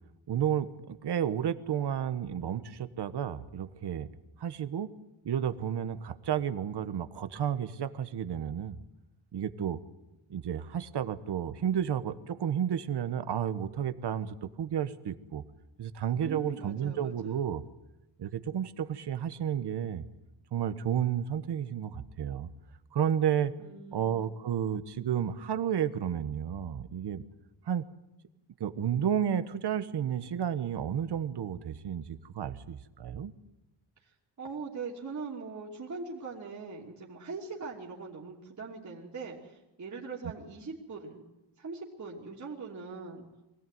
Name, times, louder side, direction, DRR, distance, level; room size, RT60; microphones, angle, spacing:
voice 1, 0.3-4.1 4.4-4.9 5.2-8.8 9.3-9.8 10.3-15.4 15.8-17.6 18.2-20.0 20.5-22.5 22.9-23.5 23.9-27.2 27.7-27.8 28.6-33.3, right 9 dB, 55° right, 12 dB, 1.3 m, -32 dB
voice 2, 16.2-17.4 23.6-24.2 34.0-43.3, right 4 dB, 35° right, -3 dB, 3.0 m, -41 dB
24.0 x 17.0 x 9.3 m, 0.98 s
wide cardioid pair, 135°, 48 cm